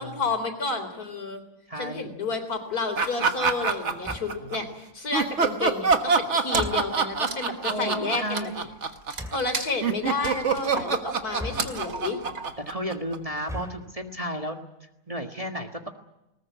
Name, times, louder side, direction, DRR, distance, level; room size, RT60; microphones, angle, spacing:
voice 1, 0.0-1.4 1.8-8.5 9.3-12.2, left 3 dB, 70° left, 7 dB, 4.1 m, -30 dB
voice 2, 1.7-2.1 4.4-4.6 7.6-8.7 12.6-14.6 15.1-15.9, equal, 20° right, 3 dB, 1.7 m, -33 dB
sound 1, 3.0-4.6 5.1-13.4, right 5 dB, 45° right, 1.7 m, -25 dB
sound 2, 4.0-4.6 6.5-7.1 9.1-9.6 11.3-12.1 13.3-14.0, left 1 dB, ahead, 2.2 m, -39 dB
Wood, 6.5-6.9 7.2-12.7, right 3 dB, 65° right, 2.7 m, -36 dB
20.5 x 20.0 x 9.5 m, 0.91 s
omnidirectional pair, 1.7 m